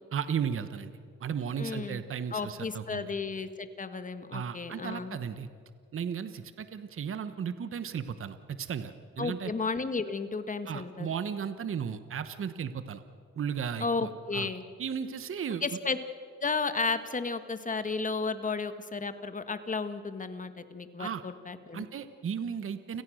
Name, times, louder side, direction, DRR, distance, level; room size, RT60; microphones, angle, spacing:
voice 1, 0.1-3.1 4.3-5.5 5.9-9.5 10.7-13.0 13.4-14.5 14.8-15.6 21.0-21.2 21.7-23.0, right 7 dB, 45° right, 11 dB, 1.1 m, -35 dB
voice 2, 1.6-2.0 2.3-5.2 9.2-11.1 13.8-14.6 15.6-16.0 16.4-21.8, left 4 dB, 25° left, 10 dB, 1.7 m, -33 dB
29.5 x 16.5 x 6.4 m, 2.2 s
cardioid pair, 90°, 30 cm